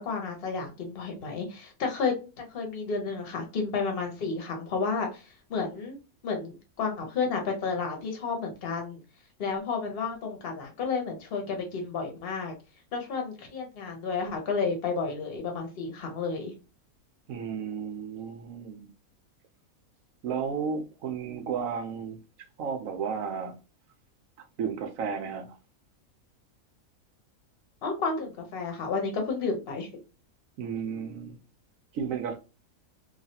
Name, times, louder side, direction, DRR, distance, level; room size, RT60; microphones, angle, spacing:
voice 1, 0.0-6.0 6.2-9.0 9.4-12.5 12.9-16.5 27.8-29.9, left 4 dB, 45° left, 1.0 m, -31 dB
voice 2, 17.3-18.9 20.2-22.2 22.6-23.6 24.4-25.6 30.6-31.4 31.9-32.4, right 6 dB, 70° right, 1.0 m, -33 dB
3.1 x 2.3 x 2.7 m
omnidirectional pair, 1.5 m